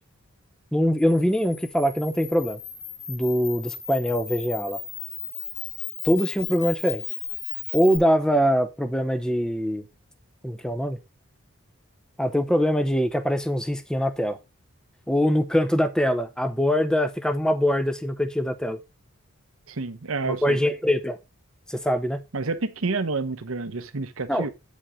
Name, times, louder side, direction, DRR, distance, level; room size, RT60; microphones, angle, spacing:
voice 1, 0.7-2.6 3.1-4.8 6.0-7.0 7.7-9.8 10.4-11.0 12.2-14.4 15.1-18.8 20.3-21.2 21.7-22.2 24.3-24.5, equal, 5° left, 0.7 m, -23 dB
Camera, 1.0-8.0, left 8 dB, 55° left, 2.2 m, -36 dB
voice 2, 19.7-20.6 22.3-24.5, right 3 dB, 75° right, 0.9 m, -29 dB
8.9 x 5.3 x 4.8 m
head